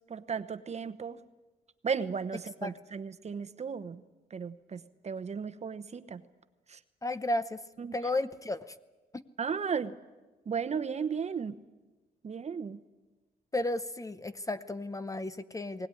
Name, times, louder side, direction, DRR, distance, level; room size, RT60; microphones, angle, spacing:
voice 1, 0.1-1.2 1.8-4.0 4.3-6.2 6.7-6.8 7.8-8.0 9.4-9.9 10.5-11.6 12.2-12.8, right 6 dB, 40° right, 12 dB, 1.0 m, -35 dB
voice 2, 7.0-7.6 7.9-8.7 9.1-9.2 13.5-15.9, left 2 dB, 20° left, 13 dB, 0.7 m, -33 dB
20.5 x 18.0 x 9.8 m, 1.2 s
cardioid pair, 110°, 17 cm